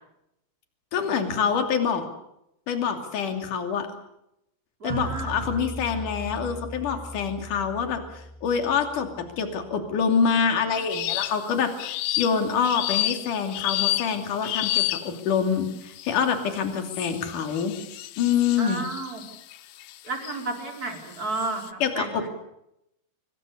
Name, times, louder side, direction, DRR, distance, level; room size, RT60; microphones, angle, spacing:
voice 1, 0.9-2.0 2.7-3.9 4.8-11.7 12.2-17.7 18.2-18.8 21.8-22.3, left 6 dB, 55° left, 6 dB, 4.1 m, -26 dB
voice 2, 4.8-5.4 18.6-19.2 20.0-22.3, right 3 dB, 20° right, 2 dB, 4.8 m, -32 dB
sound 1, 4.9-9.9, right 2 dB, 70° right, 3.8 m, -38 dB
sound 2, 10.9-11.4 11.8-15.3 16.0-16.3 16.9-20.4 21.0-21.7, left 15 dB, 75° left, 2.9 m, -30 dB
25.0 x 23.0 x 6.8 m, 0.81 s
omnidirectional pair, 4.8 m